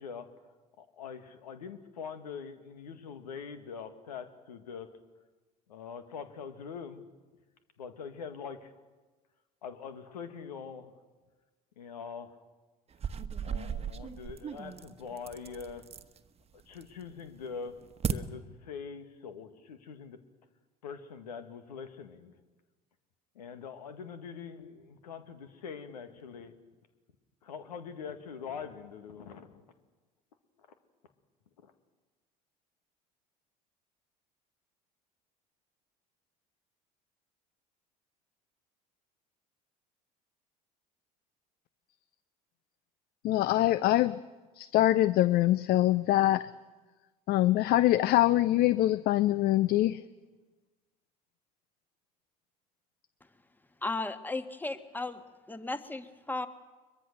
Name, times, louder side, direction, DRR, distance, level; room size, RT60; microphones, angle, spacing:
voice 1, 0.0-4.9 5.7-7.1 7.8-8.7 9.6-10.9 11.8-12.4 13.4-15.9 16.5-17.8 18.0-20.2 20.8-22.3 23.4-26.5 27.4-29.6 30.6-30.7 31.6-31.7, left 6 dB, 80° left, 9 dB, 1.9 m, -43 dB
sound 1, 12.9-16.2 16.6-17.1 17.5-18.1, right 7 dB, 30° right, 1.3 m, -36 dB
voice 2, 43.2-44.2 44.5-46.5 47.3-50.0, left 15 dB, 50° left, 17 dB, 0.6 m, -24 dB
voice 3, 53.8-55.2 55.5-56.5, left 2 dB, 10° left, 10 dB, 1.6 m, -35 dB
22.5 x 22.5 x 6.7 m, 1.3 s
hypercardioid pair, 65°, 20 cm